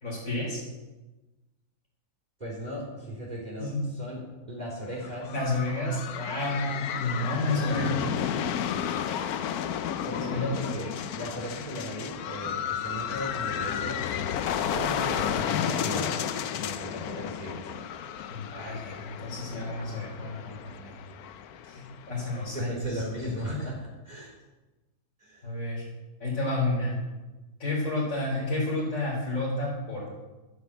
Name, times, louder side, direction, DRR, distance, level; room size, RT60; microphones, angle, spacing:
voice 1, 0.0-0.6 3.6-3.8 5.3-7.9 10.3-10.5 18.3-20.9 21.6-23.0 25.4-25.8 26.2-27.0 27.6-30.2, left 2 dB, 55° left, -8 dB, 4.4 m, -30 dB
voice 2, 2.4-5.3 7.5-7.8 10.0-14.0 14.7-16.2 16.5-17.9 22.5-24.3 25.2-25.4, equal, 25° right, -4 dB, 3.9 m, -37 dB
sound 1, 4.9-22.6, left 9 dB, 75° left, 1.2 m, -32 dB
13.0 x 7.8 x 8.3 m, 1.1 s
omnidirectional pair, 1.7 m